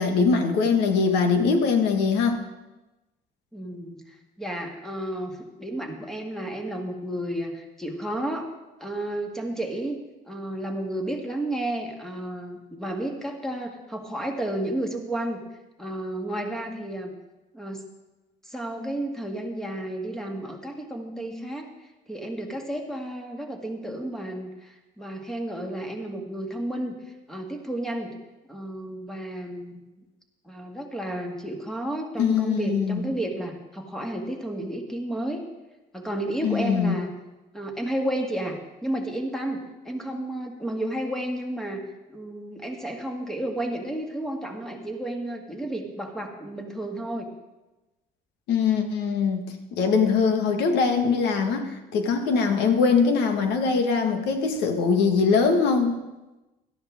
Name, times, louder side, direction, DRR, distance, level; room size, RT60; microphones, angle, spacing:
voice 1, 0.0-2.4 32.2-33.0 36.4-37.0 48.5-49.4 49.8-56.0, left 5 dB, 85° left, 5 dB, 1.7 m, -22 dB
voice 2, 3.5-8.5 8.8-10.0 10.3-15.4 15.8-17.1 17.5-17.8 18.4-21.7 22.1-28.1 28.5-29.8 30.4-35.4 35.9-37.1 37.5-41.8 42.1-47.3, right 1 dB, 5° left, 2 dB, 2.2 m, -32 dB
17.5 x 13.0 x 3.7 m, 1.1 s
cardioid pair, 110°, 17 cm